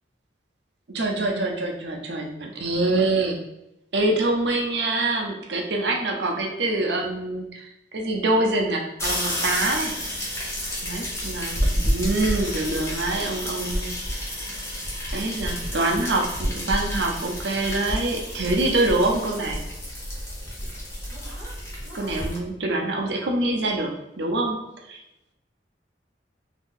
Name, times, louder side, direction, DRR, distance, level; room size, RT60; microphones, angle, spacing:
voice 1, 0.9-3.5 3.9-9.9 10.8-13.9 15.1-19.6 21.9-24.6 24.9-25.0, right 2 dB, 65° right, 1 dB, 0.6 m, -25 dB
sound 1, 9.0-22.4, equal, 15° left, 0.8 m, -30 dB
2.8 x 2.6 x 3.7 m, 0.87 s
head